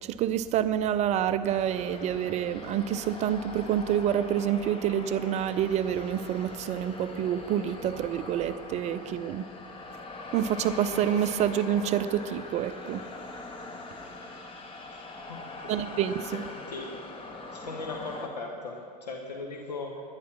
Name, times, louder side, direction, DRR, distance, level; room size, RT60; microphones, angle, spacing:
voice 1, 0.0-9.4 10.3-13.0 15.7-16.4, right 10 dB, 35° right, 12 dB, 0.4 m, -28 dB
sound 1, 1.4-18.3, left 2 dB, 25° left, 1.3 m, -42 dB
voice 2, 15.3-15.7 16.2-17.1 17.5-20.0, left 3 dB, 80° left, 1 dB, 1.2 m, -39 dB
11.0 x 10.5 x 6.1 m, 2.3 s
figure-of-eight pair, 80°, 21 cm